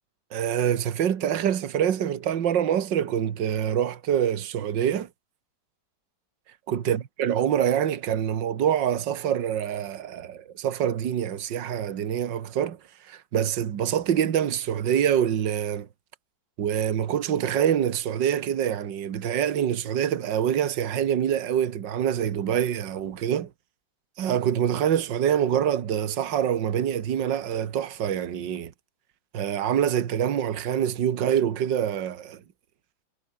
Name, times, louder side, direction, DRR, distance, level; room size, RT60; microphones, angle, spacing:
voice 1, 0.3-5.1 6.7-12.8 13.1-15.9 16.6-23.5 24.2-28.7 29.3-32.4, right 9 dB, 65° right, 2.1 m, -25 dB
omnidirectional pair, 2.1 m